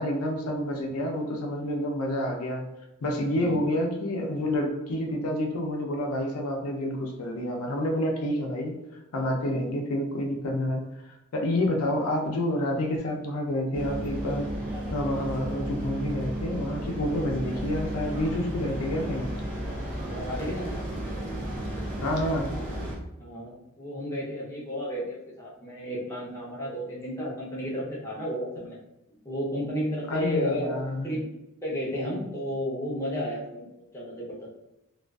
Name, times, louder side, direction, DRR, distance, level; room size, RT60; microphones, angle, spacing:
voice 1, 0.0-2.6 3.0-8.7 9.1-10.8 11.3-14.5 14.9-19.3 22.0-22.5 30.1-31.1, left 1 dB, 90° left, 1 dB, 0.5 m, -28 dB
voice 2, 3.3-3.7 9.4-9.7 20.0-20.9 23.2-28.8 29.2-30.7 31.0-31.2 31.6-34.5, equal, 15° left, -6 dB, 0.6 m, -33 dB
sound 1, 13.7-23.0, right 1 dB, 40° right, 0.6 m, -33 dB
2.4 x 2.3 x 2.2 m, 0.91 s
head